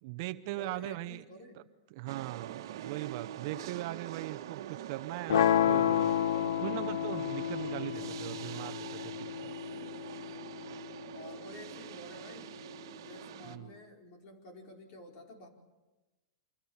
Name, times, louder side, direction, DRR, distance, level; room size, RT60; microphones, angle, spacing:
voice 1, 0.0-1.2 1.9-6.2 6.6-9.5 13.4-13.7, right 17 dB, 45° right, 12 dB, 0.9 m, -40 dB
voice 2, 0.5-1.6 3.5-3.9 11.1-12.6 12.9-15.5, left 1 dB, 40° left, 3 dB, 4.9 m, -51 dB
sound 1, 2.1-13.6, right 11 dB, 65° right, 1.5 m, -44 dB
sound 2, 5.3-11.3, left 10 dB, 90° left, 1.1 m, -31 dB
29.0 x 25.5 x 7.3 m, 1.1 s
supercardioid pair, 160°, 2 cm